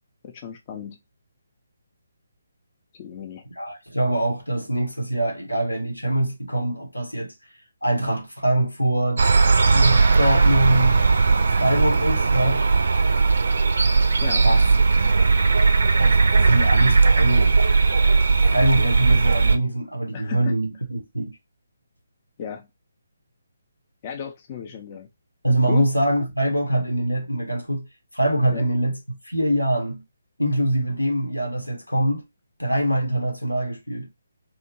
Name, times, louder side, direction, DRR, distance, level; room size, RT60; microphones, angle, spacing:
voice 1, 0.2-1.0 2.9-3.5 14.2-14.5 20.1-20.6 22.4-22.7 24.0-25.1 25.6-25.9 28.5-28.6, left 7 dB, 30° left, 0.4 m, -34 dB
voice 2, 3.6-7.3 7.8-9.2 9.7-12.6 14.4-14.6 16.0-17.6 18.4-21.3 25.4-27.9 28.1-29.0 29.2-30.0 30.4-32.2 32.6-34.1, right 1 dB, 85° left, 1.0 m, -23 dB
sound 1, 9.2-19.6, right 4 dB, 55° right, 0.4 m, -18 dB
2.8 x 2.1 x 2.8 m
figure-of-eight pair, 140°, 0 cm